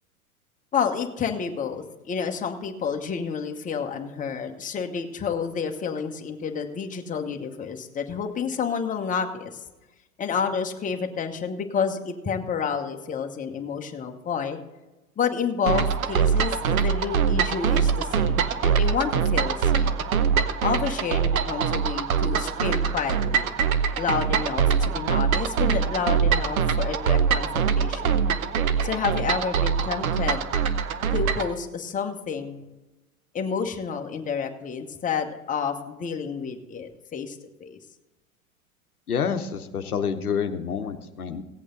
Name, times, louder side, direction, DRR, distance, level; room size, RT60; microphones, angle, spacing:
voice 1, 0.7-9.6 10.2-14.6 15.2-20.0 20.6-23.5 24.0-28.2 28.8-30.4 31.1-32.6 33.3-37.8, left 6 dB, 20° left, 4 dB, 1.1 m, -29 dB
sound 1, 15.7-31.5, right 7 dB, 70° right, 0.9 m, -23 dB
voice 2, 39.1-41.4, left 7 dB, 85° left, 7 dB, 0.8 m, -28 dB
16.5 x 8.3 x 3.9 m, 1.1 s
figure-of-eight pair, 90°, 44 cm